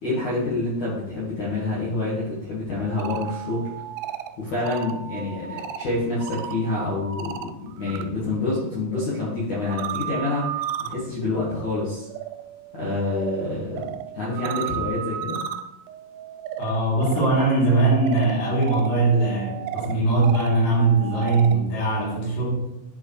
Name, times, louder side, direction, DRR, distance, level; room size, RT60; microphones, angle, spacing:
voice 1, 0.0-3.7 4.4-12.1 12.7-15.4, left 2 dB, 60° left, -7 dB, 2.0 m, -27 dB
sound 1, 2.8-8.0 8.4-21.6, right 10 dB, 85° right, 3.1 m, -35 dB
voice 2, 16.6-22.7, right 3 dB, 90° left, -7 dB, 5.6 m, -21 dB
10.5 x 4.7 x 3.2 m, 0.84 s
omnidirectional pair, 5.7 m